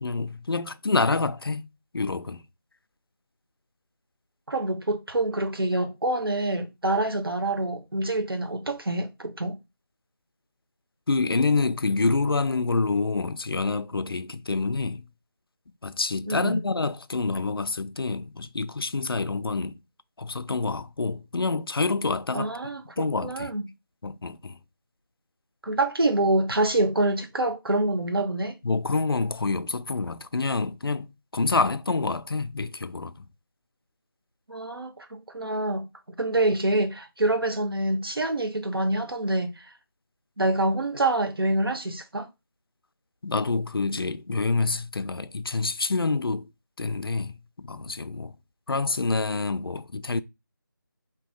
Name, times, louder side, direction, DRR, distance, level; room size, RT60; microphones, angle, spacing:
voice 1, 0.0-1.7 1.9-2.5 11.1-15.0 15.8-19.8 20.2-22.5 23.0-23.5 24.0-24.6 28.6-33.3 43.2-46.5 46.8-48.3 48.7-50.2, left 3 dB, 80° left, 0.4 m, -27 dB
voice 2, 4.5-9.6 16.3-16.6 22.3-23.6 25.6-28.6 34.5-35.9 36.2-39.6 40.4-42.3, right 2 dB, 80° right, 1.0 m, -26 dB
3.7 x 2.8 x 3.7 m
figure-of-eight pair, 170°, 12 cm